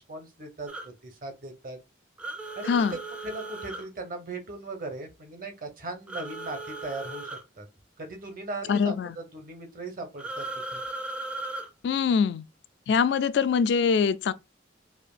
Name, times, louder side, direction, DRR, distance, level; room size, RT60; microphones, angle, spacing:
voice 1, 0.0-1.8 2.6-7.7 8.0-10.5 10.7-10.8, right 2 dB, 45° right, 1.0 m, -38 dB
sound 1, 0.7-0.9 2.2-3.9 6.1-7.4 10.2-11.7, right 2 dB, 5° right, 0.4 m, -37 dB
voice 2, 2.7-3.0 8.7-9.2 11.8-12.4 12.9-14.3, left 6 dB, 65° left, 0.3 m, -23 dB
4.9 x 2.7 x 2.4 m
head